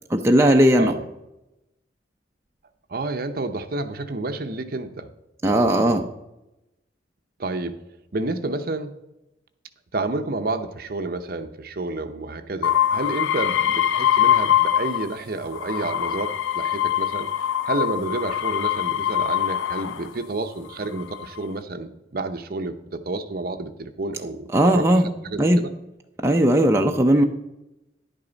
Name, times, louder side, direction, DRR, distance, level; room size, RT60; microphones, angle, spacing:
voice 1, 0.1-0.9 5.4-6.0 24.5-25.1 25.4-25.6 26.2-27.2, right 1 dB, 15° right, 3 dB, 0.5 m, -17 dB
voice 2, 2.9-5.1 5.4-6.0 7.4-7.8 8.1-9.0 9.9-17.3 17.6-25.7, right 2 dB, 50° right, 9 dB, 0.7 m, -30 dB
sound 1, 12.6-15.2 15.5-20.1 20.8-21.4, left 10 dB, 80° left, 0.4 m, -23 dB
10.5 x 9.1 x 3.9 m, 0.92 s
head